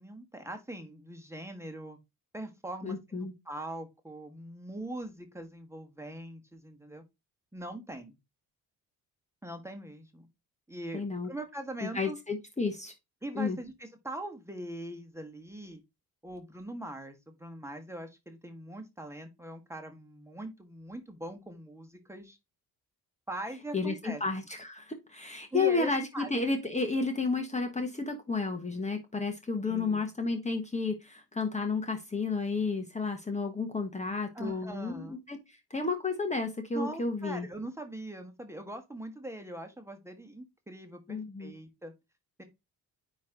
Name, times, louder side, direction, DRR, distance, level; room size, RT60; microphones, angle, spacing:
voice 1, 0.0-2.0 2.3-7.0 7.5-8.2 9.4-10.3 10.7-12.2 13.2-15.8 16.2-22.4 23.3-24.2 25.5-26.3 29.6-30.0 34.3-35.2 36.7-41.9 42.4-42.5, right 1 dB, 5° right, 5 dB, 1.5 m, -41 dB
voice 2, 2.8-3.3 10.9-11.3 11.8-12.9 13.3-13.6 23.7-37.5 41.1-41.5, left 4 dB, 20° left, 4 dB, 1.2 m, -32 dB
9.4 x 3.2 x 3.9 m, 0.23 s
cardioid pair, 85°, 38 cm